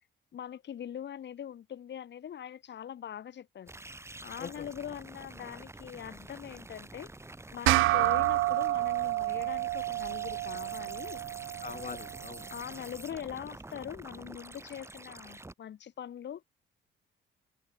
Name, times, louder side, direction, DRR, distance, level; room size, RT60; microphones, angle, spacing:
voice 1, 0.3-3.7 4.2-7.1 7.5-11.2 12.5-16.4, left 9 dB, 65° left, 5.6 m, -42 dB
sound 1, 3.7-15.5, right 2 dB, 15° right, 4.3 m, -48 dB
sound 2, 7.7-12.4, right 17 dB, 90° right, 0.7 m, -29 dB
voice 2, 11.6-12.5, left 7 dB, 40° left, 0.9 m, -42 dB
cardioid pair, 90°, 20 cm